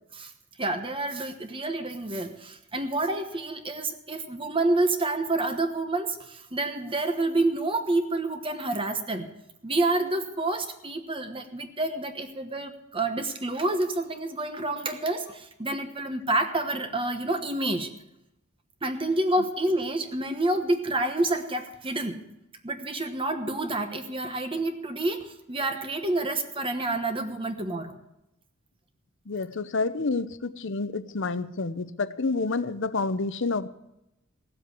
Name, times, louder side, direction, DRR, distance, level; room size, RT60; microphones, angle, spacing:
voice 1, 0.6-9.3 9.6-17.9 18.8-22.2 22.6-28.0, right 2 dB, 25° right, 1.1 m, -28 dB
voice 2, 29.3-33.7, left 3 dB, 60° left, 0.7 m, -29 dB
16.5 x 7.7 x 8.2 m
head